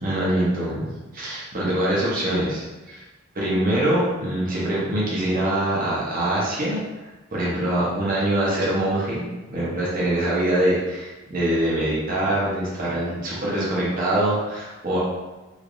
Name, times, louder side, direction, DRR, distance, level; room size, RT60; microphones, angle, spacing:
voice 1, 0.0-0.8 1.1-3.0 3.3-6.8 7.3-15.0, right 1 dB, 40° right, -7 dB, 0.8 m, -24 dB
3.3 x 3.1 x 2.5 m, 1.2 s
head